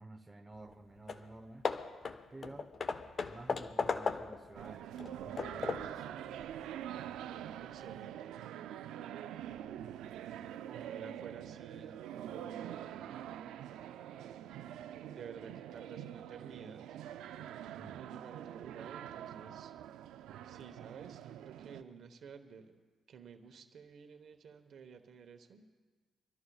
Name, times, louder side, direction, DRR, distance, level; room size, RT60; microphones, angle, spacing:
voice 1, 0.0-1.7 2.3-2.7 3.3-6.2 17.8-18.0, right 2 dB, 15° right, 4 dB, 1.0 m, -52 dB
Hammer / Wood, 0.7-0.8 1.1-1.3 1.6-4.5 5.0-6.0, left 5 dB, 45° left, 0.6 m, -37 dB
sound 1, 4.5-21.8, right 11 dB, 85° right, 0.4 m, -45 dB
voice 2, 7.6-8.4 10.6-13.7 15.1-16.8 17.4-19.7 20.4-22.8 23.1-25.7, right 6 dB, 65° right, 7 dB, 1.1 m, -52 dB
26.0 x 13.0 x 2.4 m, 1.4 s
cardioid pair, 90°, 0 cm